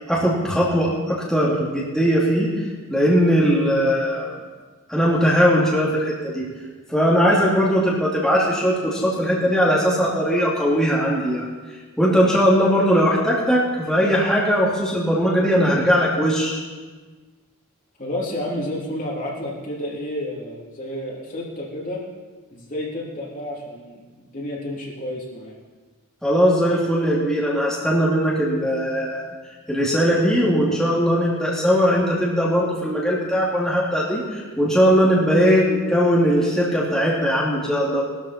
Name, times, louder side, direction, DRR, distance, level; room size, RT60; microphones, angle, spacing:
voice 1, 0.1-4.3 4.9-6.5 6.9-11.5 12.0-16.6 26.2-29.3 29.7-38.0, equal, ahead, -7 dB, 2.7 m, -19 dB
voice 2, 18.0-22.0 22.5-25.5, left 1 dB, 40° left, -4 dB, 3.2 m, -30 dB
19.0 x 13.0 x 4.4 m, 1.4 s
head